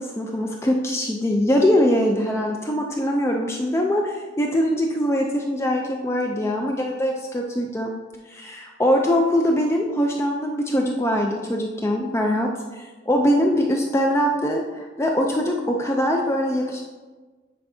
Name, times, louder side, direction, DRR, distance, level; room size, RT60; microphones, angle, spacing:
voice 1, 0.0-7.9 8.3-16.8, equal, 15° left, 1 dB, 0.4 m, -22 dB
9.5 x 4.5 x 2.6 m, 1.3 s
head